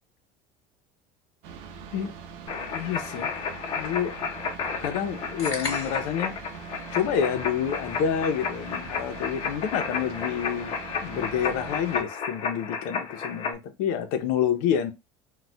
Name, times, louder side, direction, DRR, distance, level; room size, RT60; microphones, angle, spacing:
sound 1, 1.4-12.0, right 6 dB, 70° right, 0.6 m, -42 dB
sound 2, 2.5-13.5, left 6 dB, 40° left, 0.7 m, -33 dB
voice 1, 2.7-3.3 3.7-4.1 4.8-6.3 6.9-10.7 11.0-14.9, left 8 dB, 70° left, 0.7 m, -28 dB
sound 3, 5.4-6.2, left 3 dB, 25° left, 1.7 m, -34 dB
4.1 x 2.4 x 2.3 m
supercardioid pair, 125°, 14 cm